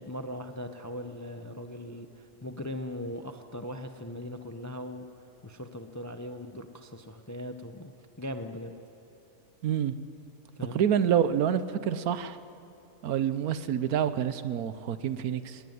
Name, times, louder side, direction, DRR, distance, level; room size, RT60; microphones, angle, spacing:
voice 1, 0.0-5.1 5.4-8.7 10.5-10.8, left 1 dB, 15° left, 7 dB, 0.6 m, -39 dB
voice 2, 9.6-9.9 10.7-12.4 13.0-15.6, right 9 dB, 70° right, 13 dB, 1.2 m, -27 dB
20.0 x 18.5 x 9.4 m, 2.8 s
omnidirectional pair, 1.6 m